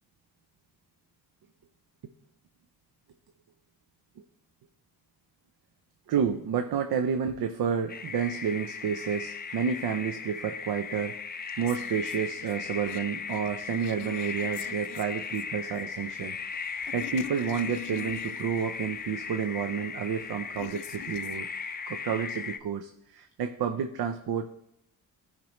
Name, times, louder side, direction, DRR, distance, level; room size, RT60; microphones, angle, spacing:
voice 1, 6.1-16.4 16.7-21.5 21.9-24.5, right 7 dB, 70° right, 6 dB, 0.6 m, -30 dB
sound 1, 7.9-22.6, left 5 dB, 25° left, 0.4 m, -37 dB
sound 2, 11.7-21.4, left 13 dB, 85° left, 0.5 m, -47 dB
15.5 x 5.2 x 3.1 m, 0.76 s
cardioid pair, 110°, 39 cm